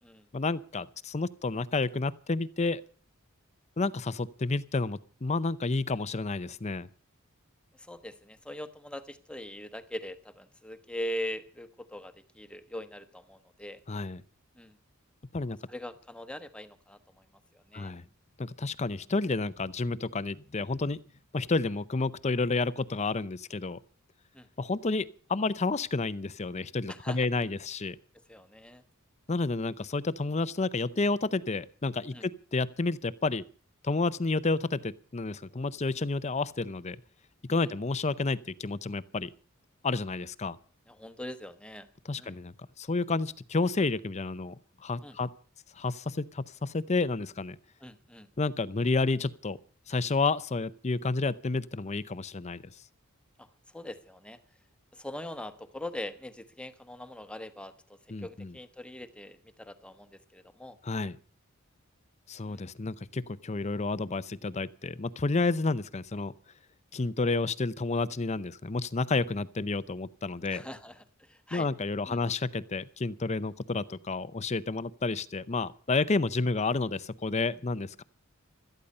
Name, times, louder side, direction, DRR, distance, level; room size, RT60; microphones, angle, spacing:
voice 1, 0.3-2.8 3.8-6.9 13.9-14.2 15.3-15.6 17.7-18.0 18.4-21.0 21.3-23.8 24.6-28.0 29.3-33.4 33.8-37.0 37.5-39.3 39.8-40.6 42.0-44.6 44.8-45.3 45.8-47.6 48.4-49.6 49.9-52.6 58.1-58.5 60.8-61.2 62.3-66.3 66.9-70.6 71.5-78.0, left 3 dB, 30° left, 0.6 m, -30 dB
voice 2, 7.7-13.8 14.6-14.8 15.5-17.2 17.5-17.9 24.3-24.5 26.9-27.3 28.3-28.8 32.1-32.3 37.6-37.7 40.9-42.4 45.0-45.2 47.8-48.3 53.4-53.5 53.7-54.4 54.9-60.8 62.5-62.7 70.4-71.7 72.1-72.2, left 1 dB, 5° left, 1.1 m, -42 dB
17.5 x 13.0 x 5.5 m
head